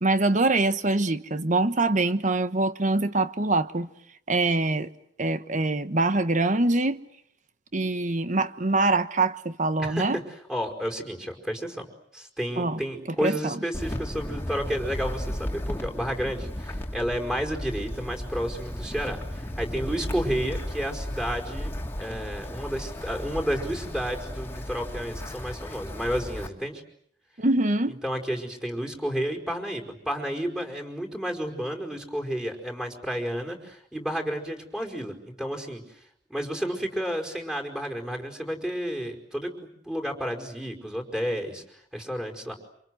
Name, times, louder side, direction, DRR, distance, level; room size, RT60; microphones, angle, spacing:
voice 1, 0.0-3.9 4.3-4.9 5.2-7.0 7.7-10.2 12.6-12.8 13.2-13.6 27.4-28.0, right 2 dB, 45° right, 1.2 m, -24 dB
voice 2, 9.8-10.2 10.5-11.8 12.1-21.7 22.0-26.8 28.0-35.8 36.3-39.5 39.8-41.6 41.9-42.5, equal, 5° right, 5.0 m, -31 dB
Wind, 13.7-26.5, left 1 dB, 15° left, 2.6 m, -35 dB
28.0 x 27.0 x 7.9 m
head